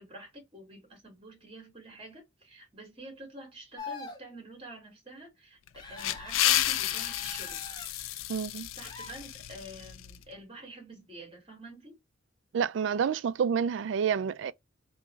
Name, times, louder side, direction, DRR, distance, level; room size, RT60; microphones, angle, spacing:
voice 1, 0.0-5.6 5.9-7.6 8.8-12.0, right 1 dB, 30° right, 2.0 m, -48 dB
sound 1, 3.8-4.2 5.7-7.9 8.8-9.1, left 4 dB, 20° left, 1.0 m, -43 dB
sound 2, 5.7-10.2, left 13 dB, 90° left, 0.4 m, -31 dB
voice 2, 8.3-8.7 12.5-14.5, right 7 dB, 65° right, 0.3 m, -28 dB
3.5 x 3.0 x 3.1 m
head